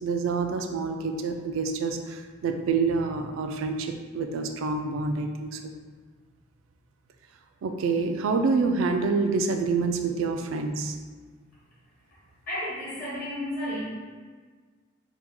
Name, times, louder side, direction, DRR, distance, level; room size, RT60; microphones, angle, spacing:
voice 1, 0.0-5.7 7.6-11.0, right 4 dB, 80° right, 5 dB, 0.3 m, -27 dB
voice 2, 12.5-13.8, equal, 45° left, -8 dB, 1.2 m, -32 dB
3.5 x 2.2 x 3.0 m, 1.5 s
head